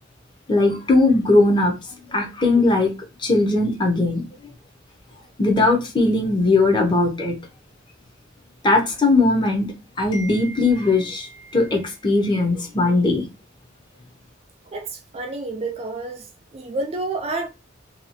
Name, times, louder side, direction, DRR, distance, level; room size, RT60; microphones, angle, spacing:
voice 1, 0.5-1.8 2.1-2.9 3.2-4.2 5.4-7.4 8.6-9.7 10.0-13.2, left 2 dB, 25° left, 0.6 m, -19 dB
voice 2, 14.7-16.3 16.5-17.5, right 2 dB, 30° right, 0.3 m, -29 dB
2.7 x 2.3 x 2.7 m
head